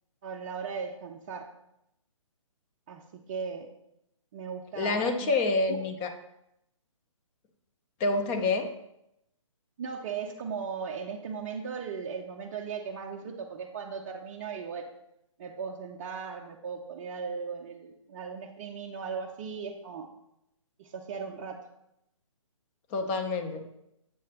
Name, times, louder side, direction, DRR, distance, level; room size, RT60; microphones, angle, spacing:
voice 1, 0.2-1.5 2.9-3.7 4.3-5.4 5.7-5.8 9.8-14.9 15.4-20.1 20.8-21.6, right 6 dB, 30° right, 0 dB, 0.5 m, -37 dB
voice 2, 4.8-6.1 8.0-8.7 22.9-23.7, left 3 dB, 20° left, 6 dB, 0.6 m, -27 dB
7.5 x 7.3 x 2.9 m, 0.82 s
figure-of-eight pair, 135°, 17 cm